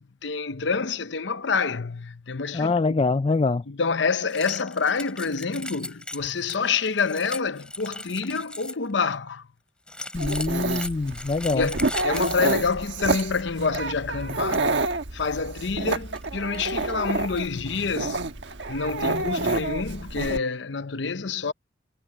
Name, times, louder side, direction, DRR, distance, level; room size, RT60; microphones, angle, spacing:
voice 1, 0.0-2.9 3.7-9.5 11.5-14.7 15.1-18.3 18.7-21.5, left 5 dB, 75° left, 0.8 m, -27 dB
voice 2, 2.5-3.6 10.1-11.7, left 3 dB, 30° left, 0.3 m, -24 dB
sound 1, 4.3-8.9 9.9-13.4 13.7-13.8 14.2-14.6 15.2-15.3 15.9-16.3 16.5-17.6, left 2 dB, 5° left, 4.5 m, -39 dB
Dog, 10.1-20.4, right 3 dB, 75° right, 1.4 m, -28 dB
head